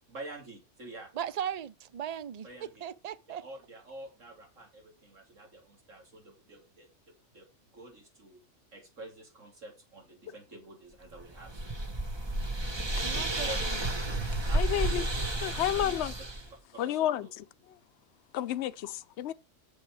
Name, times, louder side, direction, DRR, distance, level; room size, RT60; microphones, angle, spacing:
voice 1, 0.1-1.1 2.4-2.8 3.3-6.9 7.3-7.5 7.7-8.4 8.7-11.7 13.1-13.8 14.5-15.0 15.7-16.1 16.7-17.3, right 2 dB, 80° right, 3.4 m, -47 dB
voice 2, 1.2-2.5 2.8-3.4 13.0-13.8 14.1-14.5, right 9 dB, 50° right, 0.5 m, -38 dB
sound 1, 11.1-16.5, right 1 dB, 25° right, 1.0 m, -31 dB
voice 3, 14.5-15.0 15.4-16.1 16.8-17.3 18.3-19.3, left 11 dB, 65° left, 0.9 m, -30 dB
8.8 x 7.3 x 4.7 m
omnidirectional pair, 1.3 m